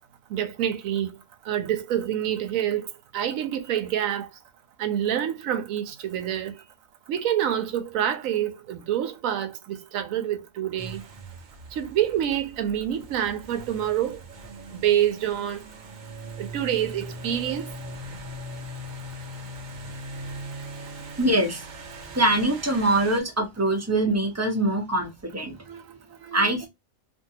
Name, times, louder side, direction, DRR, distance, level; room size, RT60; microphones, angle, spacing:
voice 1, 0.3-1.1 1.4-2.9 3.1-4.3 4.8-6.6 7.1-11.0 11.7-14.2 14.7-15.6 16.4-17.7 25.7-26.7, right 10 dB, 80° right, 1.0 m, -27 dB
sound 1, 10.8-23.2, right 1 dB, 55° right, 0.5 m, -40 dB
voice 2, 21.2-21.7 22.1-25.5 26.3-26.7, right 1 dB, 15° right, 0.6 m, -23 dB
2.6 x 2.6 x 2.7 m
omnidirectional pair, 1.4 m